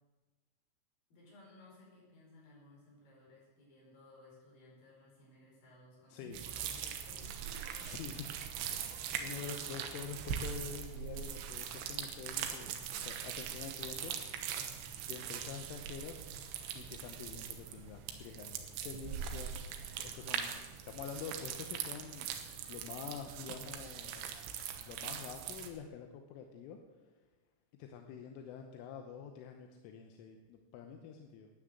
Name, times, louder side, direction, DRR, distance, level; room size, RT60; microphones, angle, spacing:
voice 1, 1.1-7.8, left 1 dB, 45° left, -3 dB, 6.2 m, -58 dB
sound 1, 6.3-25.7, right 8 dB, 80° right, 3.5 m, -41 dB
voice 2, 7.8-12.7 13.0-16.2 16.7-19.5 19.9-20.5 20.9-22.3 22.7-26.8 27.8-31.5, left 7 dB, 85° left, 5 dB, 3.4 m, -47 dB
13.0 x 9.9 x 7.9 m, 1.3 s
omnidirectional pair, 5.7 m